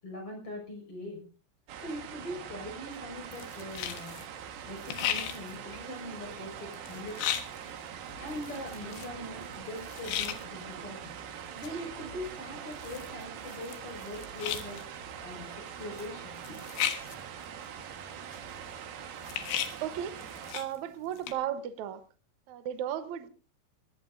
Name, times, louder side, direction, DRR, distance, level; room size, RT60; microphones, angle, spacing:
voice 1, 0.0-1.2 1.8-4.2 4.6-7.3 8.1-11.2 11.5-14.8 15.2-16.6, left 1 dB, 30° left, 6.9 m, -42 dB
sound 1, 1.7-20.6, right 8 dB, 65° right, 3.0 m, -43 dB
sound 2, 3.3-4.3 4.6-10.4 11.4-11.8 12.1-12.2 12.4-15.0 15.3-15.4 15.9-16.1 16.4-17.8 18.3-20.8 21.0-21.3, left 10 dB, 90° left, 3.8 m, -36 dB
sound 3, 8.1-16.1, right 2 dB, 50° left, 7.7 m, -58 dB
voice 2, 19.8-20.1 20.5-22.0 22.5-23.3, right 10 dB, 80° right, 1.6 m, -35 dB
22.0 x 18.0 x 2.6 m
omnidirectional pair, 5.0 m